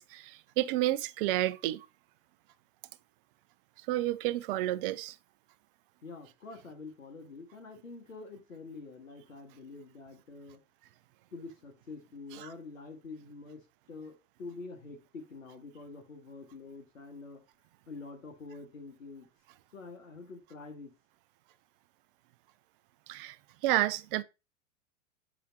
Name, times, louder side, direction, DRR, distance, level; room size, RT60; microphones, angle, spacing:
voice 1, 0.0-1.9 3.9-5.1 23.1-23.4 23.6-24.2, right 15 dB, 45° right, 0.5 m, -30 dB
voice 2, 6.0-10.6 11.3-17.4 17.9-19.3 19.7-20.9, left 3 dB, 85° left, 1.7 m, -46 dB
7.1 x 5.0 x 2.8 m
hypercardioid pair, 95°, 39 cm